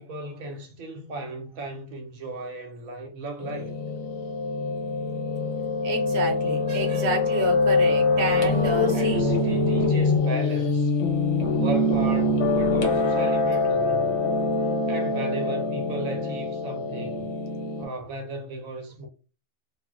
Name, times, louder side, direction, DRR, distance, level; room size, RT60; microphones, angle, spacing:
voice 1, 0.0-3.8 8.9-10.9 11.5-14.2 14.9-17.3 17.8-19.1, right 2 dB, 85° right, 1.1 m, -35 dB
Piano, 3.4-17.8, left 3 dB, 60° left, 0.9 m, -24 dB
voice 2, 5.8-9.2, right 2 dB, 50° right, 0.8 m, -29 dB
2.4 x 2.0 x 3.6 m
omnidirectional pair, 1.4 m